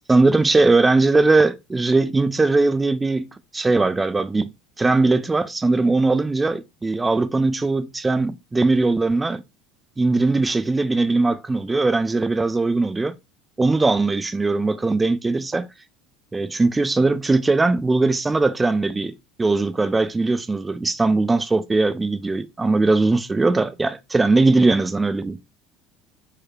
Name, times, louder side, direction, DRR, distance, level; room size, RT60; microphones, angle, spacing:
voice 1, 0.1-3.3 3.5-4.5 4.8-9.4 10.0-13.1 13.6-15.7 16.3-25.4, right 3 dB, 15° right, 0.5 m, -20 dB
4.8 x 4.7 x 2.3 m
supercardioid pair, 90°, 0 cm